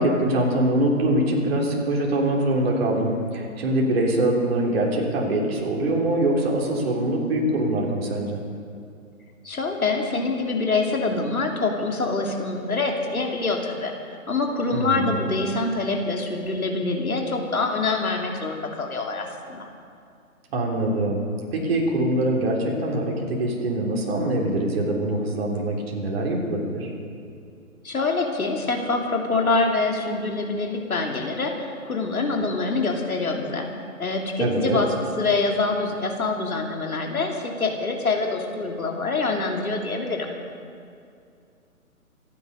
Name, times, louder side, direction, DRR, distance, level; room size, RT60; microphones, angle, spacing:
voice 1, 0.0-8.4 14.7-15.2 20.5-21.2 21.5-26.9 34.4-34.8, right 1 dB, 45° right, -1 dB, 3.5 m, -23 dB
voice 2, 9.4-13.9 14.3-19.7 27.8-33.7 34.0-34.9 35.2-40.3, left 3 dB, 75° left, 1 dB, 2.9 m, -25 dB
26.5 x 9.9 x 5.4 m, 2.4 s
figure-of-eight pair, 140°, 43 cm